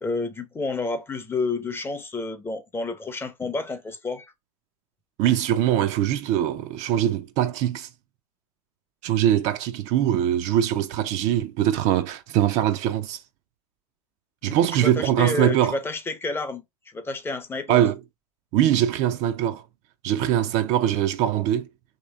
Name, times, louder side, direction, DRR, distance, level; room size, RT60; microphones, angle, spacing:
voice 1, 0.0-4.3 14.4-16.6 16.9-17.8, left 3 dB, 10° left, 0.6 m, -30 dB
voice 2, 5.2-7.9 9.0-13.2 14.4-15.8 17.7-18.0 18.5-19.6 20.0-21.7, right 11 dB, 40° right, 0.4 m, -22 dB
3.0 x 2.9 x 3.4 m
hypercardioid pair, 95°, 18 cm